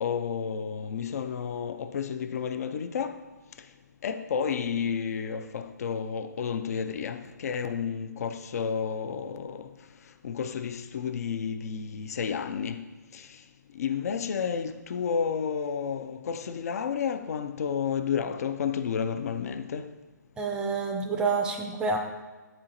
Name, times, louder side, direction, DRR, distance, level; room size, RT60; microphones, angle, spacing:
voice 1, 0.0-3.2 4.0-9.7 10.2-12.8 13.1-13.2 13.8-19.8, left 7 dB, 55° left, 0.4 m, -31 dB
voice 2, 20.4-22.0, right 4 dB, 10° right, 0.4 m, -28 dB
8.7 x 4.3 x 2.6 m
hypercardioid pair, 145°, 10 cm